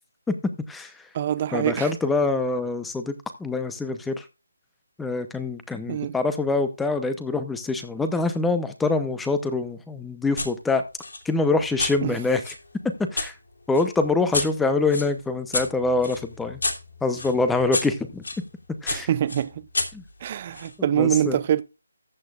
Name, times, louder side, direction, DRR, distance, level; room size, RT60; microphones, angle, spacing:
voice 1, 0.3-1.1 1.5-4.2 5.0-10.8 11.2-12.5 13.0-13.3 13.7-16.6 17.0-18.2 18.8-19.1 19.9-20.0 20.8-21.4, left 3 dB, 5° left, 0.8 m, -25 dB
voice 2, 1.1-1.9 5.9-6.1 12.0-12.1 18.9-19.6 20.2-21.6, right 10 dB, 30° right, 0.6 m, -24 dB
sound 1, 10.4-10.5 11.0-13.3 13.7-18.4 18.9-20.7, left 3 dB, 80° left, 2.6 m, -31 dB
14.5 x 8.4 x 2.4 m
figure-of-eight pair, 165°, 0 cm